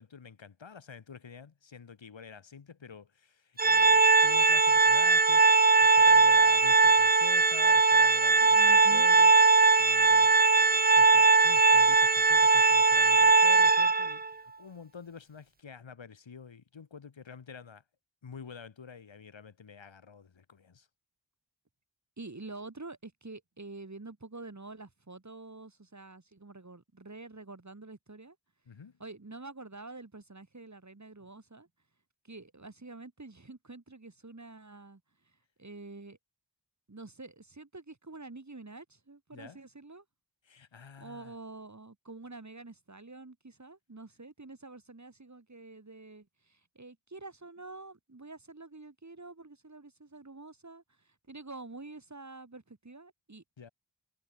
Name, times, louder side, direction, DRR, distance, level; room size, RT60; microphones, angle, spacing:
voice 1, 0.0-10.4 11.0-17.8 18.2-20.9 28.7-29.0 39.3-39.6 40.4-41.3 53.6-53.7, left 6 dB, 85° left, 2.9 m, -48 dB
Organ, 3.6-14.3, right 4 dB, 20° right, 0.6 m, -21 dB
voice 2, 8.4-9.1 22.2-28.4 29.0-31.7 32.2-36.2 36.9-40.0 41.0-53.4, right 3 dB, 40° right, 4.6 m, -47 dB
cardioid pair, 45°, 44 cm